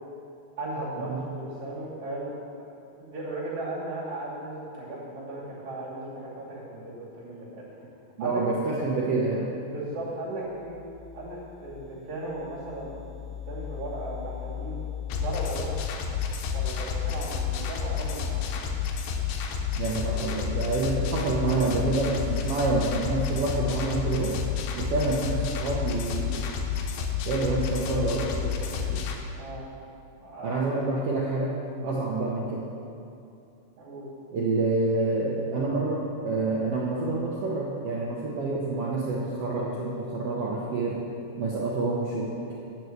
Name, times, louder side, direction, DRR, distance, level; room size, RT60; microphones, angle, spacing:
voice 1, 0.6-2.3 3.0-7.6 8.2-8.4 9.7-10.8 11.1-13.0 13.5-14.8 15.2-15.7 16.5-18.6 21.0-21.3 29.3-29.7 30.2-30.8 33.8-34.1, right 2 dB, 55° right, -8 dB, 4.0 m, -36 dB
voice 2, 8.2-9.5 19.8-24.4 24.8-26.5 27.2-29.0 30.4-32.6 34.3-41.0 41.4-42.5, right 3 dB, 90° right, -4 dB, 1.3 m, -28 dB
sound 1, 10.5-18.0, left 9 dB, 50° left, 1.8 m, -40 dB
sound 2, 15.1-29.1, left 7 dB, 80° left, 2.5 m, -30 dB
11.0 x 4.6 x 7.9 m, 2.7 s
omnidirectional pair, 4.1 m